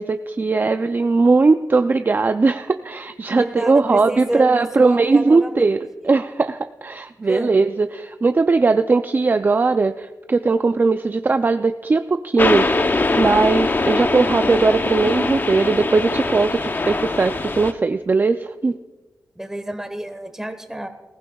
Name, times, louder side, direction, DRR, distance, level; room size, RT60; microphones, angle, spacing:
voice 1, 0.0-18.8, right 3 dB, 30° right, 9 dB, 0.4 m, -19 dB
voice 2, 3.3-5.7 7.3-7.5 19.4-20.9, right 1 dB, 10° right, 7 dB, 1.2 m, -28 dB
sound 1, 12.4-17.7, left 2 dB, 35° left, 0.7 m, -22 dB
20.5 x 15.0 x 2.3 m, 1.3 s
wide cardioid pair, 100°, 6 cm